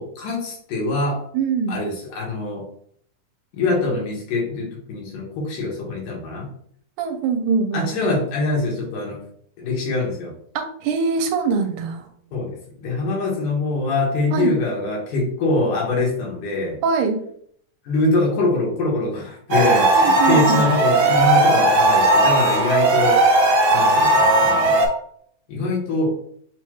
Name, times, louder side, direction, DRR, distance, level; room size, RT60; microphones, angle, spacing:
voice 1, 0.0-1.2 1.7-2.6 3.5-6.5 7.7-9.2 9.6-10.3 12.3-12.5 12.8-16.8 17.9-23.2 23.7-24.8 25.5-26.2, left 2 dB, 85° left, -3 dB, 3.0 m, -23 dB
voice 2, 1.3-1.8 7.0-7.9 10.6-12.1 14.3-14.5 16.8-17.2 19.9-20.6, right 5 dB, 85° right, 5 dB, 2.1 m, -23 dB
sound 1, 19.5-24.9, right 2 dB, 60° right, 1.6 m, -16 dB
6.8 x 2.3 x 3.0 m, 0.63 s
omnidirectional pair, 3.6 m